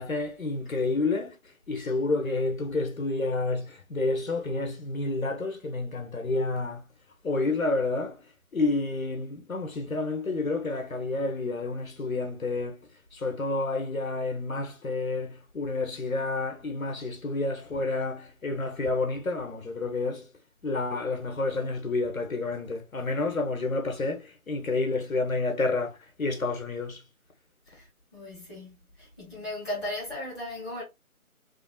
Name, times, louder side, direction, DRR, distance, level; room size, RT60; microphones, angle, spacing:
voice 1, 0.0-1.4 1.7-6.8 7.2-8.2 8.5-12.8 13.1-20.3 20.6-27.0, left 3 dB, 70° left, 1.0 m, -29 dB
voice 2, 28.1-30.8, left 1 dB, 5° left, 1.1 m, -37 dB
3.3 x 2.6 x 2.3 m
figure-of-eight pair, 160°, 44 cm